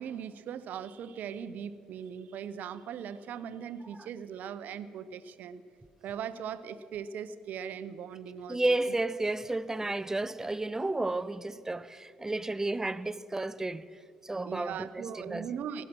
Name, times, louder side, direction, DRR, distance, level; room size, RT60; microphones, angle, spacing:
voice 1, 0.0-5.6 6.0-8.6 8.9-9.0 9.8-9.9 14.4-15.9, right 8 dB, 60° right, 0.7 m, -39 dB
voice 2, 8.5-14.0 14.2-15.5, right 2 dB, 15° right, 0.5 m, -32 dB
17.0 x 12.0 x 6.1 m
hypercardioid pair, 50°, 3 cm